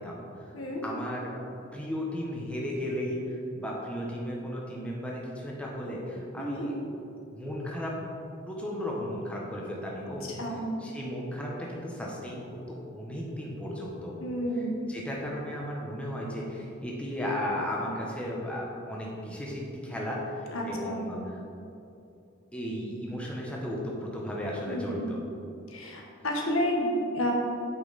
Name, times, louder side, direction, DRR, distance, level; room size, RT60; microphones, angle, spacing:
voice 1, 0.0-0.5 0.8-1.4 1.7-6.7 7.3-7.9 8.5-10.3 10.8-14.2 14.5-21.4 22.5-25.2, equal, 5° left, -4 dB, 1.0 m, -35 dB
voice 2, 0.5-0.9 6.4-6.7 10.4-10.7 14.2-14.7 20.5-21.0 24.7-25.0 25.7-27.3, equal, 80° left, 0 dB, 1.4 m, -30 dB
8.7 x 5.6 x 4.1 m, 2.7 s
head